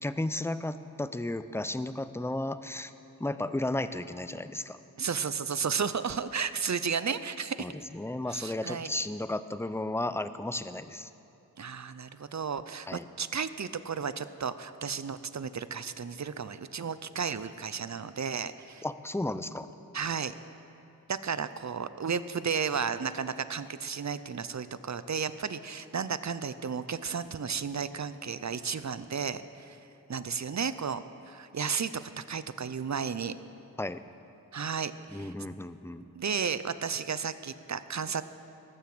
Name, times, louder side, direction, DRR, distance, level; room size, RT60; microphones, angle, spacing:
voice 1, 0.0-2.9 3.2-4.8 7.6-11.1 12.9-13.1 18.8-19.7 33.8-34.0 35.1-36.1, left 1 dB, 5° left, 12 dB, 0.5 m, -34 dB
voice 2, 5.0-7.7 8.3-8.9 11.6-18.8 19.9-20.3 21.1-29.8 30.1-33.3 34.5-35.3 36.1-38.2, right 6 dB, 50° right, 13 dB, 0.6 m, -33 dB
18.5 x 7.2 x 7.8 m, 3.0 s
wide cardioid pair, 45°, 37 cm